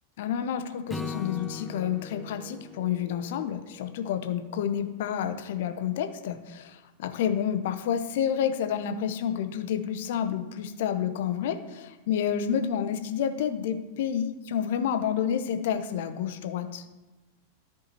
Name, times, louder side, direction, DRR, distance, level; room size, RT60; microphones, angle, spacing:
voice 1, 0.2-16.8, left 8 dB, 55° left, 9 dB, 0.7 m, -29 dB
Acoustic guitar / Strum, 0.9-4.2, left 4 dB, 5° left, 0.6 m, -40 dB
13.5 x 4.8 x 3.0 m, 1.1 s
figure-of-eight pair, 90°, 0 cm